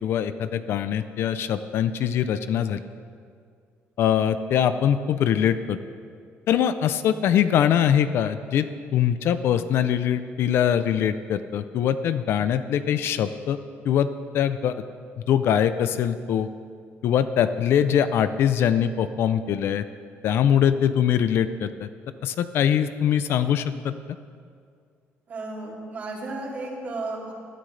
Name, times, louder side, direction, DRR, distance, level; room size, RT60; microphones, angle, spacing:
voice 1, 0.0-2.8 4.0-5.8 6.5-8.7 8.9-13.6 13.8-14.1 14.3-14.7 15.3-16.5 17.0-19.8 20.2-21.9 22.2-23.9, left 9 dB, 55° left, 12 dB, 0.5 m, -22 dB
voice 2, 25.3-27.3, right 2 dB, 35° right, -3 dB, 2.8 m, -33 dB
21.0 x 13.0 x 3.3 m, 2.2 s
cardioid pair, 170°, 5 cm